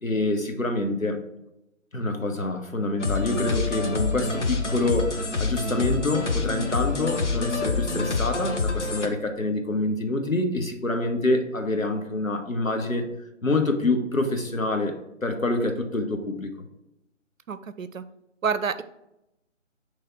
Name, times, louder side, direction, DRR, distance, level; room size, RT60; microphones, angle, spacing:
voice 1, 0.0-1.2 1.9-13.0 13.4-14.9 15.2-16.5, left 2 dB, 90° left, 4 dB, 1.2 m, -26 dB
sound 1, 3.0-9.1, left 3 dB, 60° left, 0.9 m, -27 dB
voice 2, 17.5-18.0 18.4-18.8, right 6 dB, 80° right, 12 dB, 0.6 m, -28 dB
6.6 x 3.3 x 4.4 m, 0.87 s
figure-of-eight pair, 150°, 39 cm